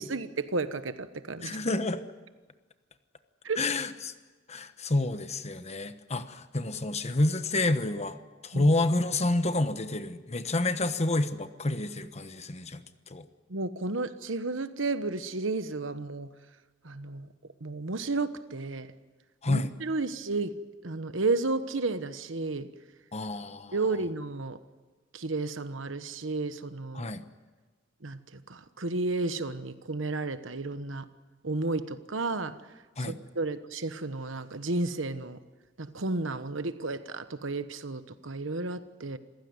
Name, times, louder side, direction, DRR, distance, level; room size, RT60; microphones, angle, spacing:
voice 1, 0.0-1.6 3.4-3.6 8.5-8.6 13.5-16.3 16.8-17.3 17.6-18.9 19.5-20.5 20.8-22.7 23.7-24.6 25.1-27.1 28.0-31.1 31.4-32.6 33.0-35.4 35.8-39.2, right 3 dB, 70° right, 11 dB, 1.2 m, -32 dB
voice 2, 1.4-2.0 3.6-4.1 4.5-8.2 8.4-12.8 13.1-13.2 19.4-19.7 23.1-23.8 26.9-27.2 33.0-33.2, left 2 dB, 35° left, 10 dB, 1.2 m, -29 dB
27.5 x 16.0 x 9.6 m, 1.3 s
head